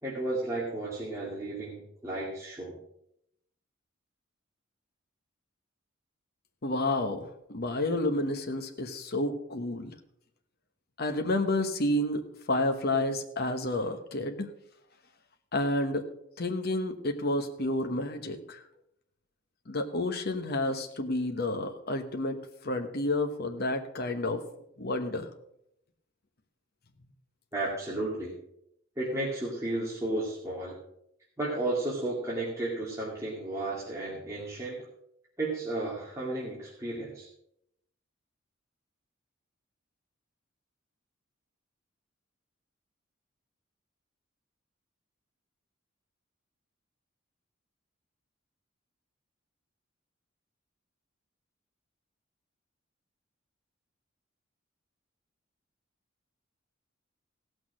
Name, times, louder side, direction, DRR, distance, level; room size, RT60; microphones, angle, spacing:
voice 1, 0.0-2.8 27.5-28.4 29.0-30.8 31.4-34.8 35.4-37.3, right 2 dB, 15° right, -7 dB, 2.3 m, -33 dB
voice 2, 6.6-9.9 11.0-14.5 15.5-16.0 16.4-18.6 19.7-24.4 24.8-25.3, left 1 dB, 50° left, 5 dB, 1.0 m, -30 dB
16.5 x 6.3 x 6.2 m, 0.76 s
head